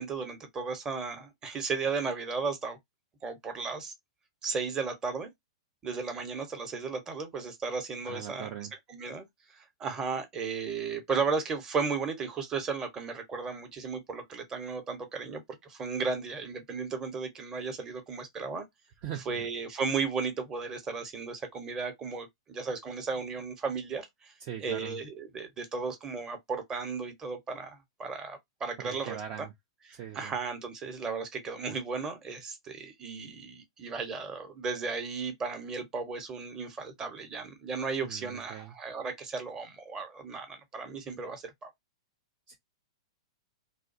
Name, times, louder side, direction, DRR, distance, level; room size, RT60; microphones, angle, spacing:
voice 1, 0.0-2.8 3.2-3.9 4.4-5.3 5.8-8.5 8.9-9.2 9.5-18.7 19.3-24.3 24.6-29.5 29.9-41.7, right 4 dB, 20° right, 0.8 m, -35 dB
voice 2, 8.0-8.7 19.0-19.5 24.4-25.0 28.8-29.5 29.9-30.4 38.0-38.7 42.5-42.6, right 10 dB, 40° right, 0.5 m, -41 dB
2.5 x 2.2 x 2.6 m
figure-of-eight pair, 105°, 3 cm